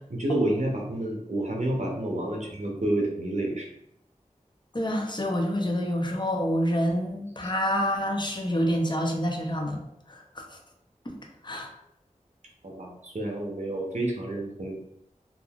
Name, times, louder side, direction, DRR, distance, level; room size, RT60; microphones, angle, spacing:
voice 1, 0.1-3.7 7.4-7.5 12.6-14.8, right 1 dB, 60° right, -1 dB, 0.6 m, -29 dB
voice 2, 4.7-9.8 10.1-10.6 11.1-11.2 11.4-11.7, equal, 35° left, 2 dB, 0.6 m, -27 dB
3.4 x 2.4 x 2.3 m, 0.78 s
wide cardioid pair, 45°, 14 cm